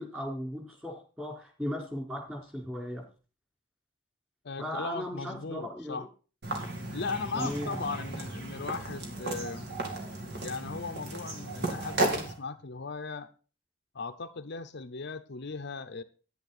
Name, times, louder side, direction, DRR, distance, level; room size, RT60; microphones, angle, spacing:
voice 1, 0.0-3.0 4.6-6.1 7.3-7.8, equal, 10° right, 1 dB, 4.1 m, -37 dB
voice 2, 4.4-6.1 6.9-9.7 10.4-13.3 13.9-16.0, left 4 dB, 55° left, 7 dB, 0.7 m, -37 dB
sound 1, 6.4-12.3, right 2 dB, 55° right, 2.8 m, -34 dB
10.5 x 10.0 x 4.1 m, 0.35 s
head